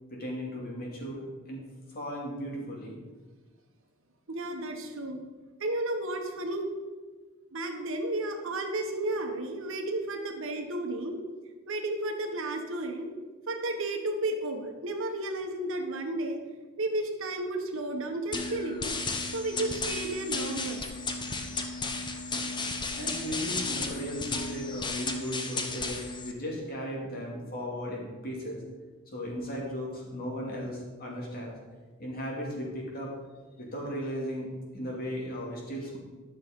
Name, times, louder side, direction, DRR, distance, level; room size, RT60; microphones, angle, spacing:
voice 1, 0.1-3.0 22.9-28.6 29.1-31.5 32.0-33.1 33.6-36.0, equal, 45° left, -3 dB, 2.6 m, -36 dB
voice 2, 4.3-5.2 5.6-6.7 7.5-11.2 11.7-13.1 13.5-16.4 16.8-19.0 19.3-20.8, right 2 dB, 65° right, 4 dB, 1.2 m, -32 dB
sound 1, 18.3-26.3, left 3 dB, 20° left, 0.8 m, -34 dB
11.0 x 6.5 x 5.4 m, 1.3 s
head